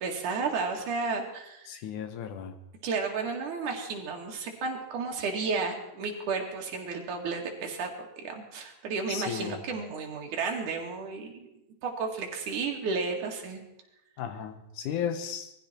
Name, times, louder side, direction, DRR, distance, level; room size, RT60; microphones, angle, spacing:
voice 1, 0.0-1.8 2.8-7.9 8.2-11.5 11.8-13.6, right 4 dB, 55° right, 1 dB, 3.5 m, -32 dB
voice 2, 1.7-2.6 9.1-9.6 14.2-15.5, left 8 dB, 65° left, 9 dB, 2.2 m, -34 dB
20.5 x 14.5 x 4.5 m, 0.86 s
omnidirectional pair, 4.7 m